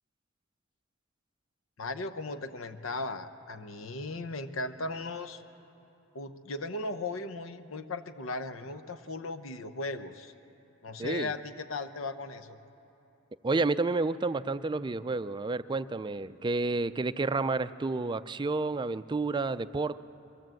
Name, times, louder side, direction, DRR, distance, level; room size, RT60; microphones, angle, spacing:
voice 1, 1.8-5.4 6.1-10.3 10.8-12.6, left 2 dB, 75° left, 10 dB, 0.9 m, -37 dB
voice 2, 11.0-11.3 13.4-20.0, right 3 dB, 20° right, 13 dB, 0.4 m, -30 dB
23.5 x 15.5 x 7.7 m, 2.9 s
head